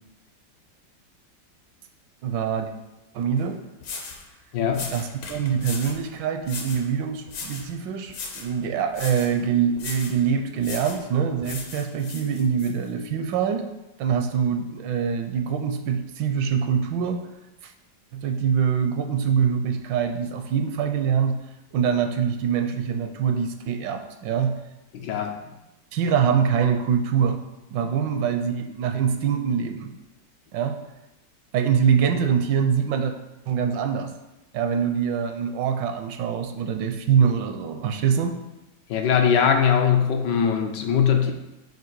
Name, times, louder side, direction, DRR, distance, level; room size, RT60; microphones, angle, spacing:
voice 1, 2.2-2.7 3.1-3.6 4.9-13.7 14.0-17.2 17.6-17.7 18.1-21.4 21.7-24.6 25.9-27.4 27.7-29.9 30.5-30.8 31.5-33.1 33.5-34.1 34.5-38.4, right 7 dB, 80° right, 7 dB, 1.3 m, -24 dB
sound 1, 3.4-3.5 3.8-4.2 4.7-6.0 6.4-6.9 7.3-7.7 8.1-8.5 8.9-9.3 9.8-10.2 10.6-11.0 11.4-12.7, left 4 dB, 60° left, 1.0 m, -37 dB
voice 2, 4.5-4.9 24.9-25.4 27.8-27.9 38.9-41.3, left 7 dB, 75° left, 4 dB, 1.2 m, -21 dB
7.6 x 2.8 x 4.6 m, 0.98 s
omnidirectional pair, 2.0 m